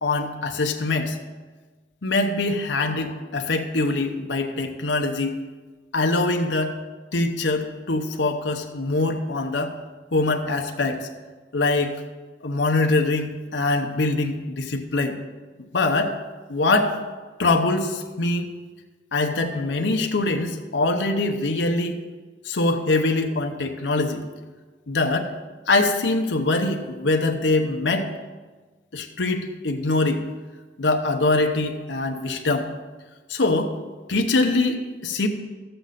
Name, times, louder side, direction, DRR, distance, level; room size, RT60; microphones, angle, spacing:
voice 1, 0.0-1.2 2.0-5.4 5.9-6.8 7.1-9.7 10.1-11.1 11.5-11.9 12.4-15.2 15.6-16.2 16.5-17.0 17.4-18.5 19.1-22.0 22.4-24.2 24.9-25.3 25.7-28.1 28.9-30.2 30.8-32.7 33.3-33.7 34.1-35.3, left 2 dB, 80° left, 4 dB, 0.8 m, -23 dB
13.0 x 7.9 x 4.1 m, 1.3 s
head